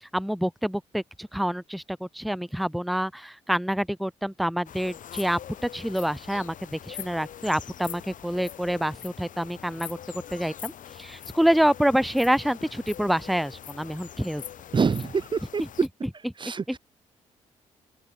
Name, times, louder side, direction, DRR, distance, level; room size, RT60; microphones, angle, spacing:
voice 1, 0.0-10.0 10.3-14.4 15.6-15.7 16.0-16.3 16.7-16.8, equal, ahead, 0.9 m, -27 dB
sound 1, 4.7-15.9, left 10 dB, 65° left, 4.0 m, -43 dB
voice 2, 14.7-15.1 15.5-15.6 16.4-16.8, right 5 dB, 35° right, 0.8 m, -25 dB
open air
supercardioid pair, 60°, 14 cm